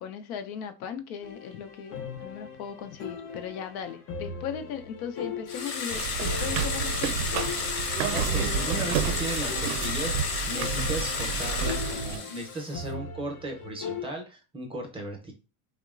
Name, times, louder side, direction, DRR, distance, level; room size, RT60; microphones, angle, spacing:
voice 1, 0.0-7.4, left 8 dB, 85° left, 8 dB, 0.6 m, -38 dB
sound 1, 1.2-14.1, left 6 dB, 35° left, 0.5 m, -40 dB
sound 2, 5.5-12.8, left 5 dB, 65° left, 1.0 m, -32 dB
sound 3, 5.9-12.2, right 7 dB, 70° right, 0.5 m, -30 dB
voice 2, 8.1-15.3, right 1 dB, 15° right, 1 dB, 0.5 m, -36 dB
2.9 x 2.1 x 2.3 m, 0.32 s
supercardioid pair, 120°, 42 cm